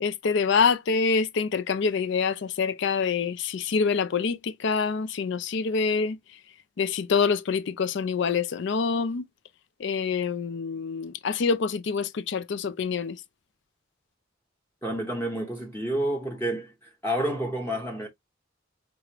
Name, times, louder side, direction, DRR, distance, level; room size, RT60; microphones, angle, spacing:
voice 1, 0.0-6.2 6.8-9.2 9.8-13.2, left 5 dB, 55° left, 0.4 m, -26 dB
voice 2, 14.8-16.7 17.0-18.1, right 1 dB, 10° left, 0.7 m, -29 dB
4.8 x 2.4 x 2.9 m
head